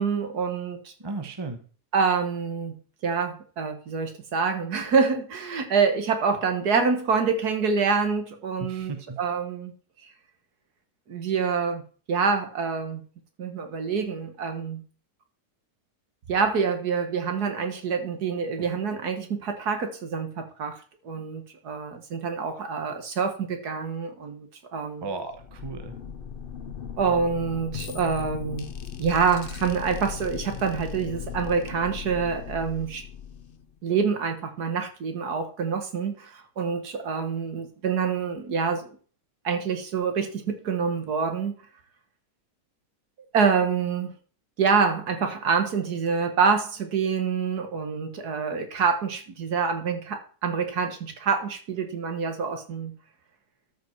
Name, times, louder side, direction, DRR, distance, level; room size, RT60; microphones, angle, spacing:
voice 1, 0.0-0.9 1.9-8.9 9.2-9.7 11.1-11.8 12.1-13.0 13.4-14.8 16.3-20.8 21.0-25.0 27.0-28.7 29.0-33.0 33.8-38.9 39.4-41.5 43.3-44.1 44.6-53.0, right 5 dB, 65° right, 1.9 m, -26 dB
voice 2, 1.0-1.6 8.7-9.2 25.0-25.9, right 3 dB, 20° right, 0.8 m, -35 dB
sound 1, 25.3-33.8, left 8 dB, 50° left, 0.7 m, -38 dB
13.0 x 5.3 x 4.5 m
omnidirectional pair, 1.9 m